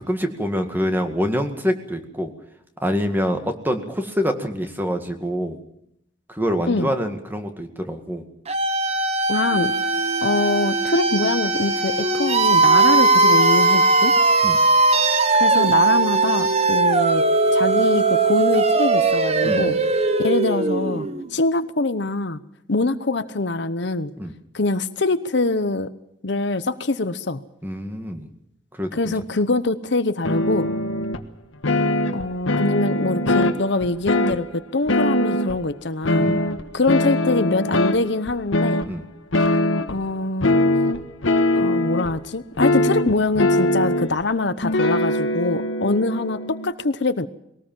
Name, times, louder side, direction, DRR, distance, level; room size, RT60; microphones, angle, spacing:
voice 1, 0.0-2.3 2.8-5.6 6.3-8.2 14.4-14.6 19.4-19.8 24.2-24.3 27.6-28.3 28.7-29.1 36.2-36.5 38.9-39.0, equal, 10° right, 6 dB, 2.0 m, -25 dB
sound 1, 8.5-21.3, right 3 dB, 30° right, 1.2 m, -19 dB
voice 2, 9.3-9.7 10.2-14.1 15.3-17.2 17.5-19.8 20.2-22.4 22.7-24.1 24.5-25.9 26.2-27.4 28.9-30.7 32.1-36.3 36.7-38.9 39.9-40.5 41.5-47.3, left 2 dB, 60° left, 12 dB, 0.9 m, -23 dB
sound 2, 30.2-31.2 31.6-34.4 34.9-35.6 36.0-38.0 38.3-38.9 39.3-40.0 40.4-42.1 42.6-44.2 44.6-46.7, left 1 dB, 85° left, 1.5 m, -21 dB
21.5 x 18.5 x 7.5 m, 0.76 s
head